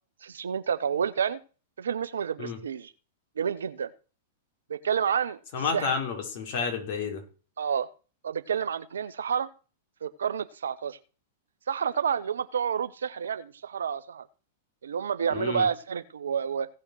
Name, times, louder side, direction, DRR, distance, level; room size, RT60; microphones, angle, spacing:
voice 1, 0.2-1.4 1.8-2.9 3.4-3.9 4.7-5.4 5.7-5.9 7.6-7.9 8.2-9.5 10.0-11.0 11.7-14.3 14.8-16.7, right 7 dB, 65° right, 0.9 m, -29 dB
voice 2, 5.5-7.2 15.3-15.7, left 5 dB, 45° left, 4.6 m, -30 dB
16.5 x 5.6 x 6.3 m
figure-of-eight pair, 100°, 0 cm